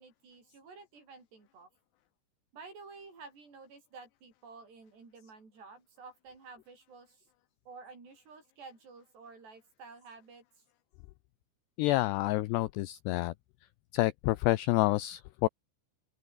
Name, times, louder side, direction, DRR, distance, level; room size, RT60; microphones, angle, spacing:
voice 1, 0.0-1.7 2.5-7.2 7.7-10.4, right 4 dB, 60° right, 10.0 m, -51 dB
voice 2, 11.8-13.3 13.9-15.5, left 18 dB, 80° left, 2.5 m, -28 dB
open air
omnidirectional pair, 5.5 m